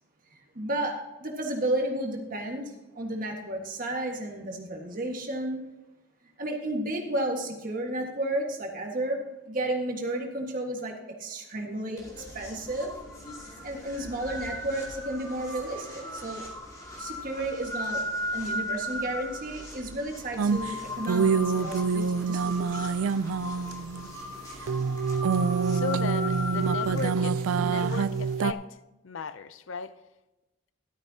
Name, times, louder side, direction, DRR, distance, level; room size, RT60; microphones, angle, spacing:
voice 1, 0.3-5.6 6.4-9.2 9.5-12.9 13.4-16.4 17.0-18.0 18.3-22.9, right 1 dB, 40° right, 1.6 m, -32 dB
sound 1, 12.0-28.3, left 1 dB, 15° left, 2.4 m, -38 dB
sound 2, 20.4-24.3 24.7-28.5, right 5 dB, 80° right, 0.4 m, -26 dB
voice 2, 25.7-28.8 29.0-29.9, left 5 dB, 65° left, 0.5 m, -36 dB
13.5 x 12.0 x 2.8 m
head